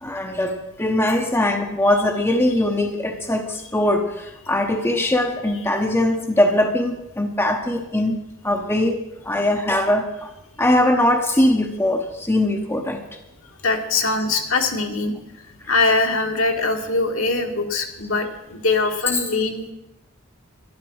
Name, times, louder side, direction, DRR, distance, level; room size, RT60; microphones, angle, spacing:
voice 1, 0.0-10.3 10.6-13.0 19.1-19.2, left 1 dB, 10° left, 4 dB, 0.9 m, -21 dB
voice 2, 13.6-15.1 15.7-19.7, left 3 dB, 65° left, 3 dB, 1.8 m, -22 dB
12.0 x 11.5 x 6.3 m, 0.93 s
head